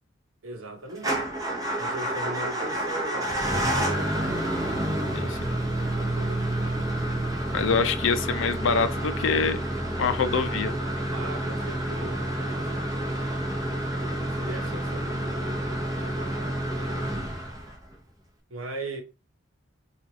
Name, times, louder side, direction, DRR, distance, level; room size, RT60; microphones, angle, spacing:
voice 1, 0.4-1.3 1.8-4.2 5.8-6.4 11.1-13.3 14.2-15.6 18.5-19.0, right 2 dB, 85° right, 0.8 m, -39 dB
Motor vehicle (road) / Engine starting / Idling, 1.0-17.9, right 1 dB, 20° right, 0.7 m, -29 dB
voice 2, 5.1-5.6 7.5-9.6 10.0-10.7, left 5 dB, 70° left, 0.4 m, -25 dB
3.0 x 2.4 x 3.8 m
head